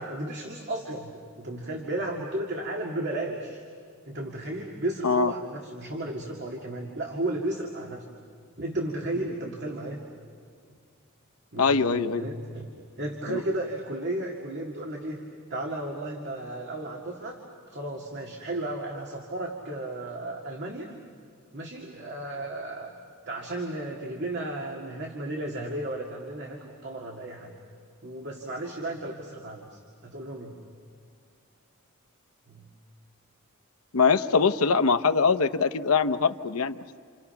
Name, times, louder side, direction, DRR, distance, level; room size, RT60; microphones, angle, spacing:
voice 1, 0.0-3.6 4.1-8.0 8.6-10.0 11.5-12.7 13.0-15.2 15.5-17.4 17.7-20.9 21.5-22.9 23.3-27.6 28.0-30.6 32.5-32.7, right 1 dB, 55° right, 0 dB, 2.3 m, -34 dB
voice 2, 11.6-12.2 13.3-13.4 33.9-37.0, left 5 dB, 85° left, 10 dB, 0.8 m, -23 dB
29.0 x 29.0 x 5.8 m, 2.2 s
head